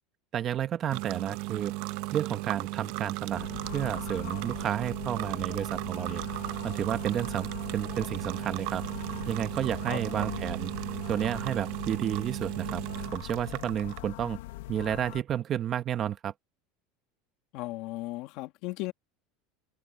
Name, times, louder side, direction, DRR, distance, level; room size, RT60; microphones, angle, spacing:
voice 1, 0.3-1.7 2.1-3.5 3.7-6.2 6.6-8.8 9.3-10.7 11.1-12.8 13.1-14.4 14.7-16.3, right 10 dB, 30° right, 1.1 m, -31 dB
sound 1, 0.9-14.0, right 20 dB, 60° right, 0.8 m, -36 dB
sound 2, 3.3-15.2, left 17 dB, 85° left, 1.0 m, -42 dB
voice 2, 9.8-10.4 17.5-18.9, left 19 dB, 55° left, 2.5 m, -37 dB
supercardioid pair, 155°, 0 cm